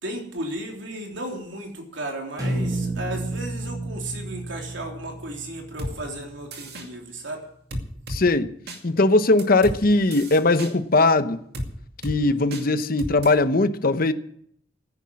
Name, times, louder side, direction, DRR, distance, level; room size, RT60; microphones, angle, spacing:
voice 1, 0.0-7.4, right 1 dB, 75° right, 3.4 m, -34 dB
sound 1, 2.4-6.6, right 1 dB, 20° right, 4.9 m, -31 dB
sound 2, 5.8-5.9 6.5-6.9 7.7-8.2 8.7-8.8 9.4-9.8 10.1-10.7 11.5-11.7 12.0-12.2 12.5-12.6 13.0-13.3, equal, 55° right, 2.3 m, -32 dB
voice 2, 8.1-8.5 8.8-11.4 12.0-14.1, left 2 dB, 50° left, 0.8 m, -20 dB
15.5 x 9.8 x 7.6 m
head